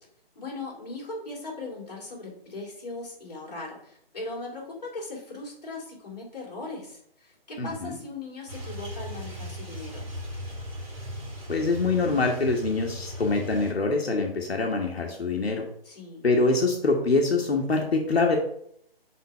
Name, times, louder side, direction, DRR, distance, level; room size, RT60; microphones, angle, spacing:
voice 1, 0.3-10.1 15.8-16.3, left 2 dB, 40° left, -4 dB, 2.8 m, -39 dB
voice 2, 7.6-8.0 11.5-15.6 16.2-18.4, left 3 dB, 90° left, 1 dB, 1.4 m, -24 dB
sound 1, 8.5-13.7, equal, 35° right, 1.9 m, -37 dB
5.9 x 3.9 x 5.3 m, 0.69 s
hypercardioid pair, 180°, 30 cm